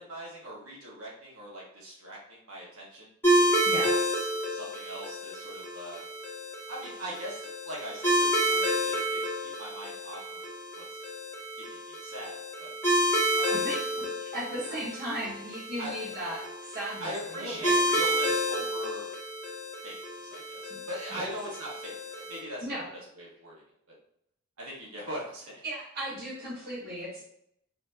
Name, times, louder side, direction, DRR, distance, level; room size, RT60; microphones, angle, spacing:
voice 1, 0.0-3.9 4.5-6.0 6.7-10.4 10.8-10.9 11.6-12.7 13.3-13.6 14.7-14.8 15.8-16.1 17.0-19.0 19.8-22.7 23.1-23.5 23.9-24.0 24.6-25.6, right 1 dB, 75° right, -4 dB, 1.5 m, -41 dB
sound 1, 3.2-22.4, equal, 10° left, 1.5 m, -30 dB
voice 2, 3.6-4.3 13.5-17.8 20.7-20.8 21.1-21.3 22.6-22.9 25.6-27.3, equal, 45° right, -7 dB, 1.2 m, -37 dB
4.3 x 2.9 x 2.8 m, 0.71 s
head